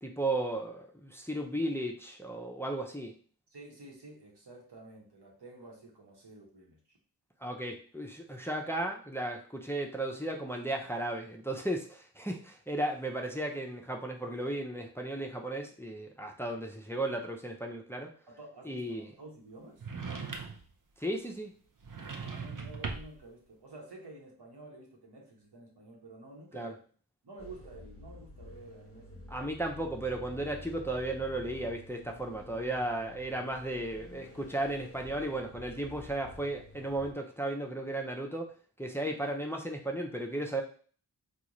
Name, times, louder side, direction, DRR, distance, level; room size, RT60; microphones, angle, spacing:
voice 1, 0.0-3.1 7.4-18.1 18.7-19.1 21.0-21.5 26.5-26.7 29.3-38.5 38.8-40.6, right 1 dB, 5° left, 2 dB, 0.5 m, -35 dB
voice 2, 3.5-7.0 18.3-19.8 22.2-26.8 27.2-29.4, right 2 dB, 85° right, -1 dB, 1.1 m, -50 dB
sound 1, 19.8-20.7 21.8-23.2, right 5 dB, 55° right, 0.6 m, -39 dB
sound 2, 27.4-37.1, left 1 dB, 35° left, 0.8 m, -50 dB
3.8 x 2.4 x 3.0 m, 0.43 s
wide cardioid pair, 55°, 39 cm